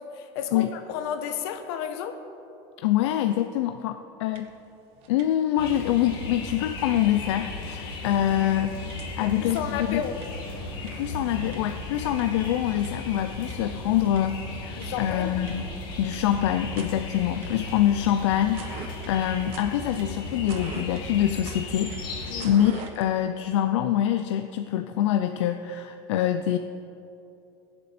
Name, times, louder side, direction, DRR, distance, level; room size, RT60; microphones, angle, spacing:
voice 1, 0.0-2.2 9.2-10.2 14.8-15.4 22.3-22.6, left 8 dB, 65° left, 1.2 m, -32 dB
voice 2, 2.8-4.5 5.1-8.8 9.2-10.0 10.8-15.7 16.0-26.6, left 11 dB, 80° left, 0.6 m, -25 dB
sound 1, 4.3-4.7 4.9-5.6 6.0-6.1 7.0-7.1 7.6-7.7 8.0-23.1, right 6 dB, 40° right, 1.0 m, -47 dB
sound 2, 5.6-22.5, left 2 dB, 30° left, 2.1 m, -36 dB
23.0 x 7.7 x 4.3 m
supercardioid pair, 165°, 15 cm